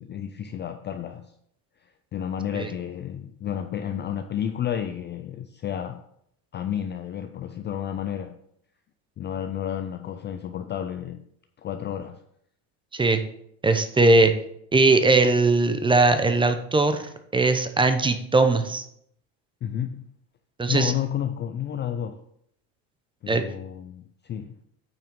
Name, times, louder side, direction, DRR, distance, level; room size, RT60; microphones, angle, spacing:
voice 1, 0.0-1.3 2.1-6.0 6.5-8.4 9.2-11.2 11.6-12.2 19.6-20.1 20.7-22.2 23.2-24.6, left 9 dB, 25° left, 8 dB, 0.4 m, -31 dB
voice 2, 13.6-14.3 14.7-18.8 20.6-20.9 23.3-23.4, right 3 dB, 10° right, 8 dB, 0.7 m, -20 dB
9.0 x 5.7 x 3.7 m, 0.72 s
supercardioid pair, 115°, 43 cm